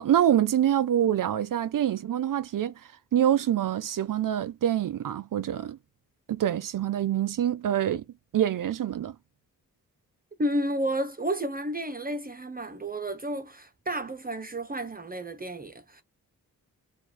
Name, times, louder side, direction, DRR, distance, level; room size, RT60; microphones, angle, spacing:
voice 1, 0.0-2.7 3.1-5.8 6.3-8.0 8.3-9.2, right 10 dB, 65° right, 0.6 m, -25 dB
voice 2, 10.4-16.0, right 1 dB, 25° right, 0.7 m, -31 dB
4.5 x 2.4 x 4.2 m
wide cardioid pair, 100°, 34 cm